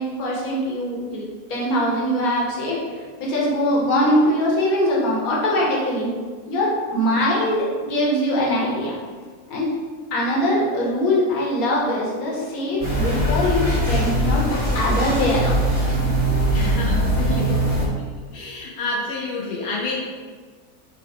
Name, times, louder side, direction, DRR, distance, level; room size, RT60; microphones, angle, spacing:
voice 1, 0.0-6.1 6.5-8.9 9.5-9.7 10.1-15.6, left 1 dB, 70° left, -4 dB, 1.4 m, -22 dB
sound 1, 12.8-17.9, right 1 dB, 30° left, 0.8 m, -21 dB
voice 2, 16.5-17.9 18.3-20.0, left 3 dB, 90° left, -4 dB, 1.2 m, -28 dB
5.5 x 2.0 x 4.0 m, 1.5 s
omnidirectional pair, 1.6 m